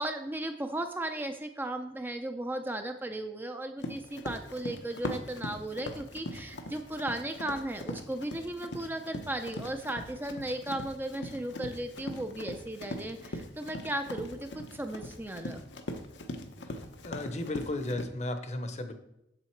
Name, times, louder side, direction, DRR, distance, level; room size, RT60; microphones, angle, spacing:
voice 1, 0.0-15.6, right 1 dB, 10° right, 6 dB, 0.4 m, -36 dB
Run, 3.8-18.0, left 1 dB, 85° left, 1.0 m, -41 dB
voice 2, 16.7-18.9, left 1 dB, 40° left, 8 dB, 0.8 m, -35 dB
7.7 x 7.3 x 4.5 m, 0.84 s
head